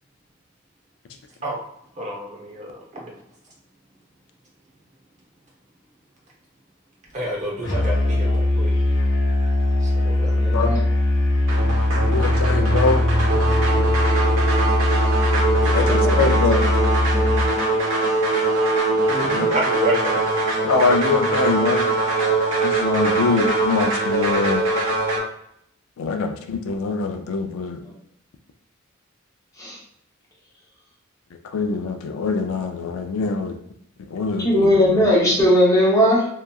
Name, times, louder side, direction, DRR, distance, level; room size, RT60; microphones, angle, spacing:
voice 1, 2.0-3.1 7.1-8.7 9.8-10.4 15.8-16.3 19.1-20.2, right 1 dB, 35° right, -2 dB, 0.8 m, -29 dB
Musical instrument, 7.6-17.6, left 1 dB, 60° left, 0.7 m, -20 dB
voice 2, 10.4-10.8 27.8-27.9 29.6-29.8 34.4-36.3, equal, 15° left, -4 dB, 0.7 m, -17 dB
sound 1, 11.5-25.2, right 2 dB, 75° right, 0.8 m, -22 dB
voice 3, 12.1-13.0 15.6-16.7 19.3-19.5 20.6-21.8 22.6-24.6 26.0-27.8 31.5-33.6 34.1-35.0, left 4 dB, 80° left, 5 dB, 0.4 m, -23 dB
2.8 x 2.3 x 2.3 m, 0.75 s
head